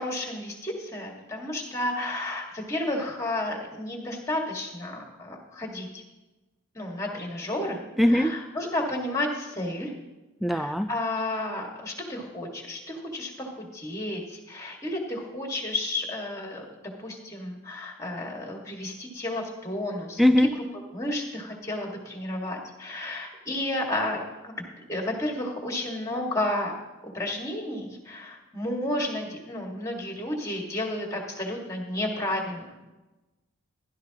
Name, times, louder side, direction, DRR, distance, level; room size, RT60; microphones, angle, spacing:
voice 1, 0.0-6.0 6.8-7.8 8.1-9.9 10.5-16.6 17.0-20.2 20.9-26.7 27.1-32.7, left 1 dB, 15° left, 1 dB, 1.8 m, -32 dB
voice 2, 8.0-8.4 10.4-10.9 20.2-20.5, left 1 dB, ahead, 11 dB, 0.3 m, -21 dB
16.0 x 11.5 x 2.9 m, 1.1 s
head